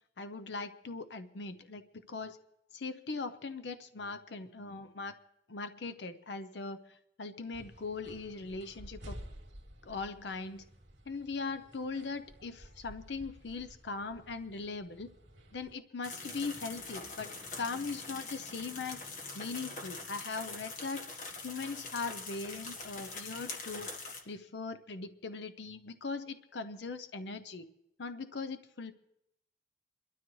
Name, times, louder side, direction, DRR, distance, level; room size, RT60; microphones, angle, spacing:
voice 1, 0.2-2.4 2.7-5.1 5.5-9.2 9.8-10.6 11.1-15.1 15.5-19.0 19.3-27.7 28.0-28.9, left 4 dB, 70° left, 10 dB, 0.6 m, -40 dB
sound 1, 7.5-15.8, equal, 80° right, 2.1 m, -52 dB
sound 2, 16.0-24.2, left 3 dB, 40° left, 1.3 m, -43 dB
25.5 x 12.5 x 3.1 m, 0.82 s
head